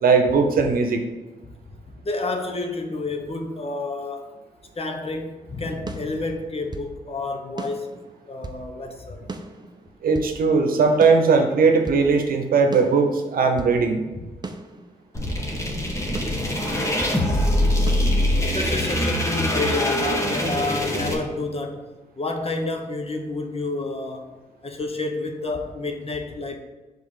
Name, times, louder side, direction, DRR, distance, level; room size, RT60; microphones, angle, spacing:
voice 1, 0.0-1.0 10.0-14.0, right 4 dB, 70° right, 5 dB, 0.9 m, -19 dB
voice 2, 2.0-4.3 4.8-8.0 8.3-9.2 16.3-16.4 18.4-21.8 22.2-24.3 24.6-26.6, left 2 dB, 40° left, 4 dB, 1.1 m, -29 dB
sound 1, 5.9-6.9 7.6-8.7 9.3-10.4 11.0-12.1 12.7-13.8 14.4-15.5 16.1-17.2 17.9-18.9, right 3 dB, 30° right, 0.7 m, -37 dB
sound 2, 15.1-21.1, left 1 dB, 20° left, 1.6 m, -23 dB
5.3 x 4.0 x 5.0 m, 1.2 s
supercardioid pair, 50°, 15 cm